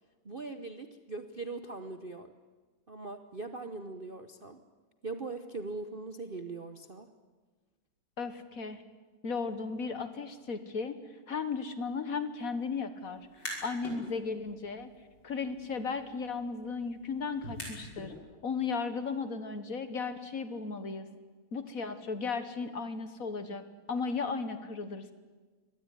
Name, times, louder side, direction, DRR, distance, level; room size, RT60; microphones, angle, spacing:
voice 1, 0.2-2.3 2.9-4.6 5.0-7.1, right 3 dB, 40° right, 8 dB, 0.8 m, -41 dB
voice 2, 8.2-8.8 9.2-11.0 11.3-13.3 13.6-14.9 15.2-18.1 18.4-21.1 21.5-23.6 23.9-25.1, left 5 dB, 50° left, 11 dB, 1.6 m, -35 dB
sound 1, 13.2-14.0 14.4-18.1, left 1 dB, 70° left, 6.6 m, -45 dB
24.0 x 18.5 x 9.8 m, 1.4 s
omnidirectional pair, 2.2 m